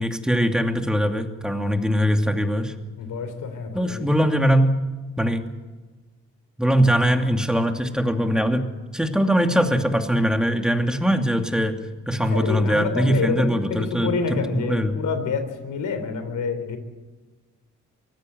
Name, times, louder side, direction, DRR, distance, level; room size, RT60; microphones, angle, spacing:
voice 1, 0.0-2.7 3.7-4.7 5.2-5.5 6.6-8.7 8.9-11.7 12.1-14.9, equal, ahead, 4 dB, 2.7 m, -21 dB
voice 2, 2.9-4.1 12.3-16.8, left 5 dB, 75° left, 9 dB, 3.8 m, -28 dB
24.0 x 16.5 x 7.9 m, 1.3 s
cardioid pair, 80°, 31 cm